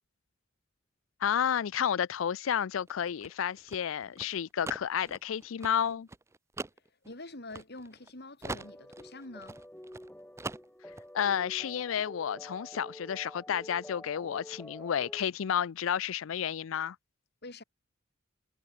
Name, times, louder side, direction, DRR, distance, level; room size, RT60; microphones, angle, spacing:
voice 1, 1.2-6.1 11.1-17.0, left 8 dB, 85° left, 0.4 m, -31 dB
sound 1, 2.8-8.1 8.4-10.1 10.4-11.1, right 3 dB, 15° right, 0.5 m, -42 dB
voice 2, 7.0-9.6 17.4-17.6, left 2 dB, 55° left, 4.1 m, -46 dB
sound 2, 8.4-15.3, left 1 dB, 5° left, 2.7 m, -49 dB
head